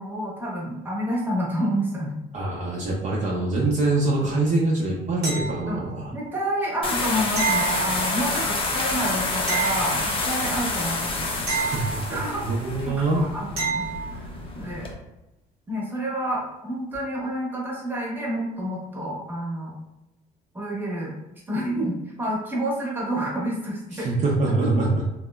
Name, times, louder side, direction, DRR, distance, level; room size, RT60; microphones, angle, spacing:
voice 1, 0.0-2.1 5.7-5.8 6.1-11.3 12.1-13.8 14.2-14.9 15.7-19.7 20.5-21.1 21.5-24.2 24.6-24.7, right 1 dB, 10° right, -4 dB, 0.8 m, -29 dB
voice 2, 2.3-6.1 11.5-12.0 12.4-13.2 23.9-24.9, right 2 dB, 45° right, -4 dB, 0.5 m, -24 dB
sound 1, 5.2-6.0 7.4-8.4 9.5-10.5 11.5-12.5 13.6-14.2 16.9-17.0, right 5 dB, 65° right, 0.9 m, -29 dB
sound 2, 6.8-14.9, left 3 dB, 30° left, 0.5 m, -28 dB
2.8 x 2.0 x 2.2 m, 0.97 s
cardioid pair, 110°, 17 cm